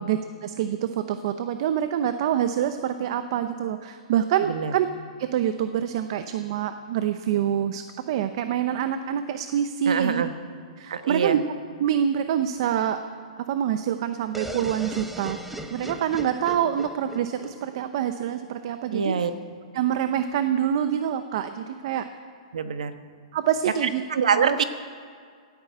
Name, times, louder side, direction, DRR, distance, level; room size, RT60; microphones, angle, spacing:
voice 1, 0.0-4.9 5.2-10.2 10.8-11.4 11.8-13.0 13.4-15.4 15.7-19.3 19.7-22.0 23.3-24.0 24.3-24.6, right 9 dB, 45° right, 9 dB, 0.8 m, -26 dB
voice 2, 9.9-10.3 10.9-11.4 18.9-19.3 22.5-22.9 23.8-24.6, right 6 dB, 85° right, 10 dB, 1.2 m, -24 dB
sound 1, 14.3-18.1, right 1 dB, 5° right, 0.9 m, -37 dB
17.0 x 9.9 x 8.2 m, 2.1 s
hypercardioid pair, 160°, 4 cm